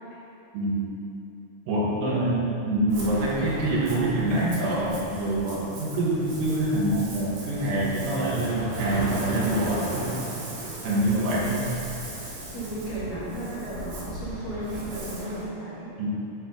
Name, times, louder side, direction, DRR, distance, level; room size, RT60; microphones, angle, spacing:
voice 1, 1.7-10.2 10.8-11.6 16.0-16.1, right 1 dB, 85° right, -6 dB, 2.9 m, -25 dB
Ocean, 2.9-15.4, right 1 dB, 60° right, 1.2 m, -37 dB
voice 2, 11.1-11.6 12.5-15.9, right 1 dB, 50° left, -11 dB, 2.5 m, -34 dB
9.0 x 4.4 x 3.9 m, 2.8 s
omnidirectional pair, 3.7 m